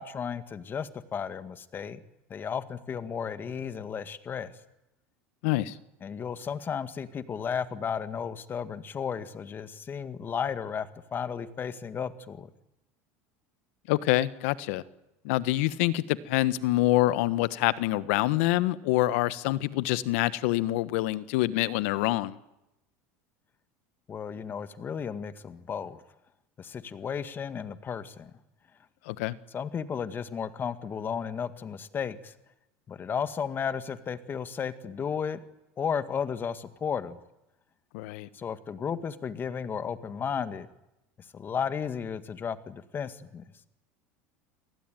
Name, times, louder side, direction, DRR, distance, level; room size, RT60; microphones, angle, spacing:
voice 1, 0.0-2.0 2.3-4.5 6.0-12.5 24.1-26.0 26.6-28.3 29.5-32.3 32.9-35.4 35.8-37.2 38.3-40.7 41.3-43.5, left 7 dB, 30° left, 11 dB, 1.9 m, -34 dB
voice 2, 5.4-5.7 13.9-14.8 15.2-22.4 29.1-29.3 37.9-38.3, left 17 dB, 75° left, 15 dB, 1.3 m, -26 dB
29.0 x 19.5 x 9.3 m, 0.91 s
supercardioid pair, 115°, 7 cm